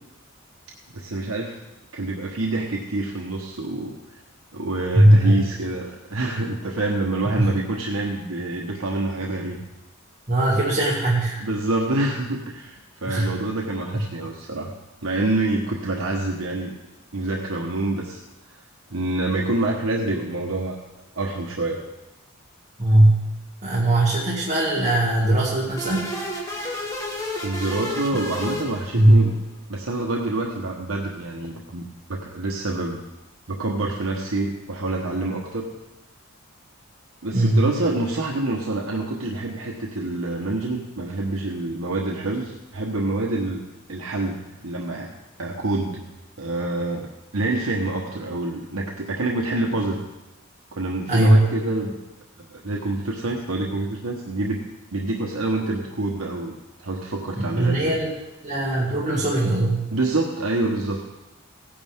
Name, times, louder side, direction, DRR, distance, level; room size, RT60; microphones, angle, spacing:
voice 1, 0.9-1.6 1.9-4.2 4.5-9.6 11.4-14.7 15.0-16.8 17.1-18.2 18.5-18.6 18.9-20.8 21.2-21.8 27.4-29.4 29.7-31.8 32.1-33.0 33.5-35.7 37.2-43.6 43.9-45.1 45.4-46.0 46.4-47.1 47.3-50.0 50.7-51.9 52.5-54.6 54.9-56.6 56.8-58.0 59.9-61.0, right 2 dB, 75° right, 0 dB, 1.1 m, -27 dB
voice 2, 4.9-5.4 7.4-7.5 10.3-11.4 13.1-13.4 22.8-23.2 23.6-26.1 28.9-29.2 37.3-37.6 51.1-51.4 57.4-58.1 58.4-59.8, right 1 dB, 35° right, -6 dB, 2.1 m, -19 dB
sound 1, 25.8-29.4, left 1 dB, 15° left, 1.9 m, -31 dB
16.5 x 9.9 x 3.6 m, 1.0 s
head